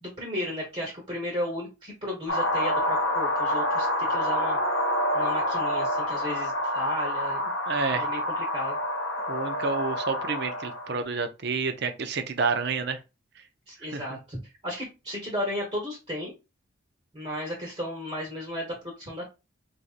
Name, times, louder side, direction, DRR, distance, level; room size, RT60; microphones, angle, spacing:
voice 1, 0.0-4.6 5.1-7.5 7.9-8.8 13.7-16.3 17.1-19.4, left 1 dB, 30° right, 1.2 m, -34 dB
sound 1, 2.3-11.0, left 1 dB, 70° left, 0.9 m, -27 dB
voice 2, 7.7-8.1 9.3-13.0 13.9-14.2, right 4 dB, 55° right, 0.5 m, -29 dB
4.5 x 2.6 x 2.4 m
head